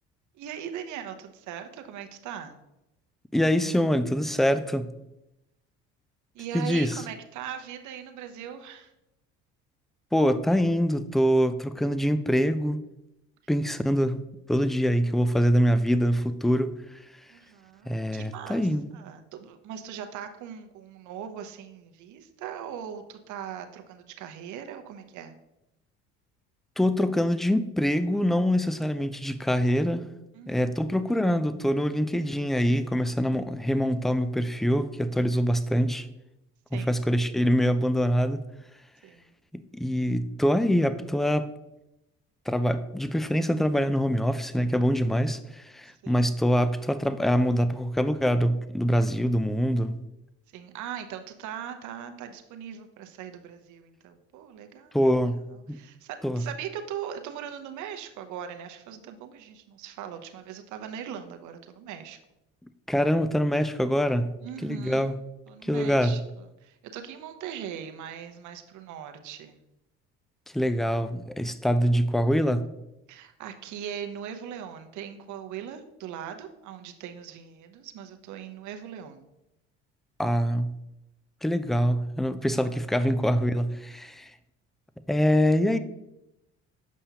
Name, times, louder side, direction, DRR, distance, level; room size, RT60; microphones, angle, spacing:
voice 1, 0.4-2.6 6.3-8.9 17.3-18.7 18.9-25.4 30.3-30.8 36.7-36.9 39.0-39.3 46.0-46.3 50.5-55.0 55.7-62.2 64.4-65.1 65.5-69.6 73.1-79.3 82.4-82.8, right 9 dB, 65° right, 7 dB, 0.8 m, -40 dB
voice 2, 3.3-4.9 6.5-6.9 10.1-12.8 13.5-14.2 14.5-16.7 17.9-18.9 26.8-30.0 30.5-36.1 36.7-38.4 39.5-41.5 42.5-50.0 54.9-55.8 56.2-56.4 62.9-64.3 64.6-65.1 65.6-66.2 70.5-72.7 80.2-80.8 81.4-84.3 85.1-85.8, equal, ahead, 12 dB, 0.3 m, -24 dB
7.2 x 5.4 x 2.8 m, 0.91 s
supercardioid pair, 70°, 32 cm